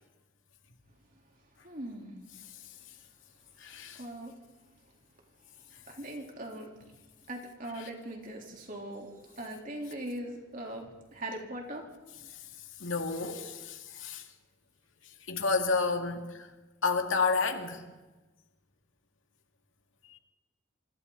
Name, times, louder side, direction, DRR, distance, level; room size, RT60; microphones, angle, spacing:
voice 1, 1.6-2.2 3.7-4.3 5.9-6.9 7.3-11.9, right 1 dB, 40° right, 0 dB, 3.7 m, -41 dB
voice 2, 3.6-4.0 7.8-7.9 12.3-12.4 12.8-14.3 15.3-16.5 16.8-17.8 20.1-20.2, left 4 dB, 75° left, 4 dB, 2.3 m, -30 dB
27.5 x 25.0 x 4.1 m, 1.2 s
head